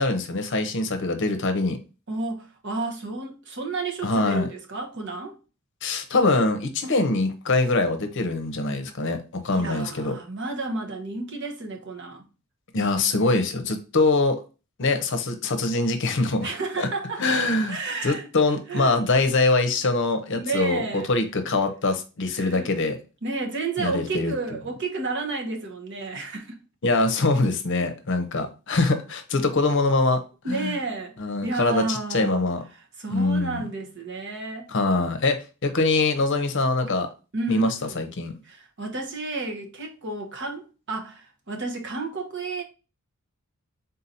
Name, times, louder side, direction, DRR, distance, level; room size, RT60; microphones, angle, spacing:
voice 1, 0.0-1.8 4.0-4.5 5.8-10.2 12.7-14.4 14.8-16.9 17.2-23.0 23.8-24.3 26.8-30.2 30.5-30.7 31.2-32.6 33.1-33.6 34.7-37.1 37.5-38.4, left 2 dB, 60° left, 0.7 m, -23 dB
voice 2, 2.1-5.4 9.5-12.2 16.4-17.2 17.6-18.3 18.7-19.0 20.3-21.1 22.3-22.7 23.2-26.6 27.8-27.9 30.4-31.1 31.4-32.4 33.0-34.7 37.3-38.0 38.4-42.6, right 3 dB, 55° right, 0.9 m, -31 dB
3.9 x 2.7 x 4.1 m
head